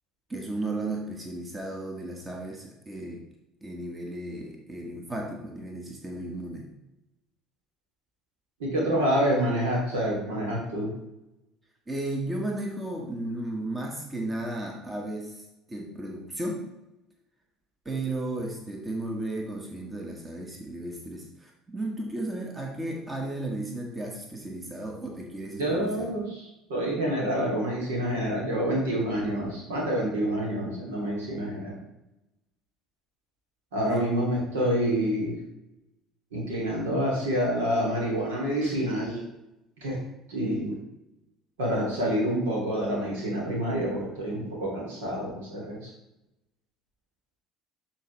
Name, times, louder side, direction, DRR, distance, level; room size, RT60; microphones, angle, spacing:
voice 1, 0.3-3.2 3.6-6.7 11.9-15.4 15.7-16.7 17.8-26.1 33.9-34.1, right 2 dB, 15° right, 0 dB, 1.5 m, -34 dB
voice 2, 8.6-10.9 25.6-31.8 33.7-35.3 36.3-39.2 39.8-40.0 40.3-40.7 41.6-45.9, equal, 70° right, -2 dB, 2.7 m, -27 dB
12.5 x 4.5 x 3.2 m, 0.93 s
figure-of-eight pair, 60°, 0 cm